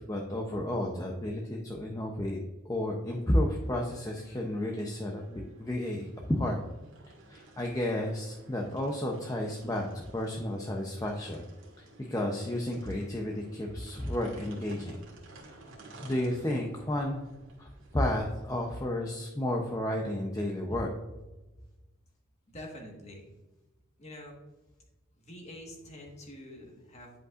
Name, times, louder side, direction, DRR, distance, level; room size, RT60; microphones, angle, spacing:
voice 1, 0.0-2.4 2.6-6.6 7.3-11.4 12.1-15.0 15.4-15.6 16.0-17.2 17.6-20.9, left 1 dB, 15° left, 0 dB, 0.6 m, -32 dB
sound 1, 3.1-18.8, right 2 dB, 65° right, 1.9 m, -54 dB
voice 2, 22.5-23.3 24.0-24.4 25.2-27.2, left 1 dB, 30° left, 1 dB, 1.4 m, -46 dB
10.5 x 5.2 x 2.5 m, 1.0 s
head